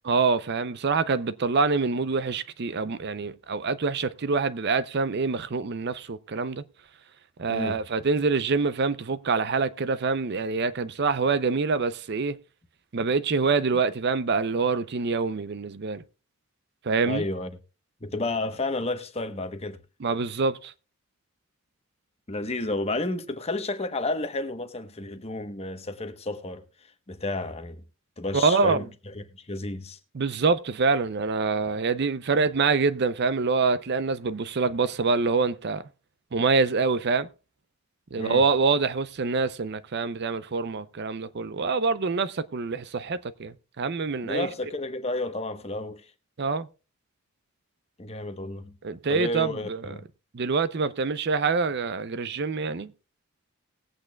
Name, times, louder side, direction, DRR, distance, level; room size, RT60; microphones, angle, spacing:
voice 1, 0.1-6.6 7.4-12.4 12.9-16.0 16.8-17.2 20.0-20.7 28.3-28.9 30.1-35.8 36.3-37.3 38.1-44.5 46.4-46.7 48.8-49.9 50.3-52.9, right 4 dB, 50° right, 0.5 m, -25 dB
voice 2, 7.5-7.8 17.0-17.5 18.0-19.8 22.3-27.8 28.2-28.9 29.1-30.0 38.2-38.4 44.2-46.1 48.0-48.7 49.1-50.1, left 2 dB, 30° left, 1.0 m, -31 dB
20.0 x 8.4 x 2.3 m
head